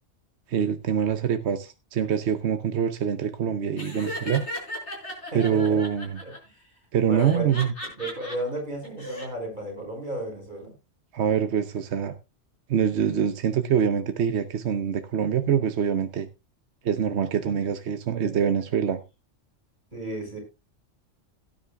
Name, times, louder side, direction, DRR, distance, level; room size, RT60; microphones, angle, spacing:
voice 1, 0.5-4.4 5.3-6.2 6.9-7.7 11.1-12.1 12.7-16.3 16.8-19.0, right 8 dB, 65° right, 9 dB, 1.0 m, -25 dB
Laughter, 3.8-6.4 7.2-8.4 8.8-9.3, left 1 dB, 65° left, 5.2 m, -36 dB
voice 2, 5.3-5.8 6.2-6.6 7.1-7.5 8.0-10.7 19.9-20.4, right 1 dB, 40° right, 1 dB, 5.7 m, -33 dB
17.5 x 9.9 x 2.3 m, 0.25 s
omnidirectional pair, 1.3 m